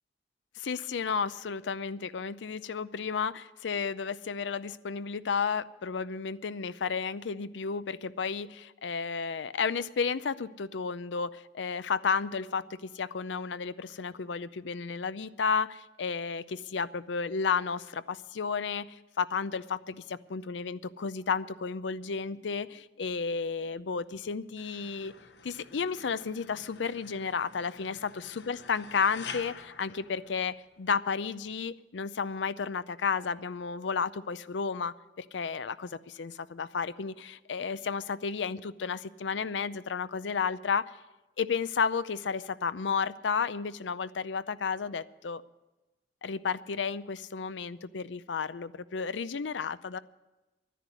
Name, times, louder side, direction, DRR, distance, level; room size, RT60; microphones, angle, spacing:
voice 1, 0.6-18.9 19.2-25.1 25.4-40.9 41.4-45.4 46.2-50.0, left 5 dB, 90° left, 15 dB, 0.5 m, -32 dB
sound 1, 24.6-30.9, left 6 dB, 75° left, 1.0 m, -48 dB
11.5 x 10.0 x 9.4 m, 1.1 s
head